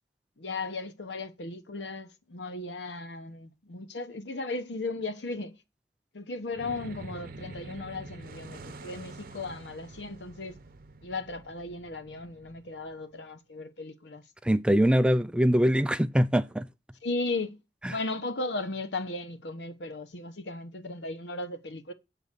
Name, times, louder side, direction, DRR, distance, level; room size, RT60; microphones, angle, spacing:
voice 1, 0.4-5.5 6.1-10.6 11.0-14.2 17.0-17.6 17.9-21.9, left 2 dB, 85° left, 1.1 m, -36 dB
sound 1, 6.5-13.1, right 3 dB, 55° right, 0.8 m, -47 dB
voice 2, 14.4-16.7 17.8-18.0, equal, 5° right, 0.4 m, -23 dB
8.3 x 4.0 x 6.7 m
head